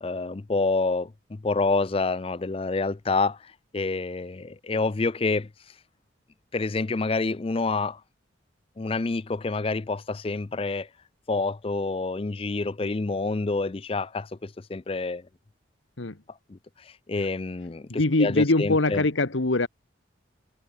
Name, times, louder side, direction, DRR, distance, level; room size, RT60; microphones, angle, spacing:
voice 1, 0.0-5.8 6.5-8.0 8.8-10.9 11.3-15.2 16.5-19.0, left 3 dB, 30° left, 0.4 m, -28 dB
voice 2, 17.9-19.7, left 2 dB, 75° left, 1.4 m, -23 dB
head